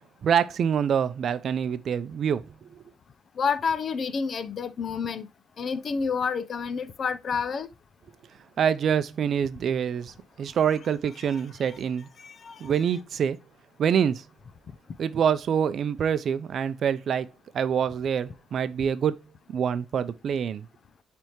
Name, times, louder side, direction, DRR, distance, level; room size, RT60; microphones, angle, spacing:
voice 1, 0.0-2.8 8.6-12.1 12.6-13.4 13.8-14.2 15.0-17.3 17.5-19.2 19.5-20.7, right 8 dB, 60° right, 0.5 m, -26 dB
voice 2, 3.4-5.3 5.6-7.7 12.2-12.6, left 5 dB, 50° left, 0.6 m, -29 dB
9.0 x 3.5 x 3.0 m
cardioid pair, 90°, 0 cm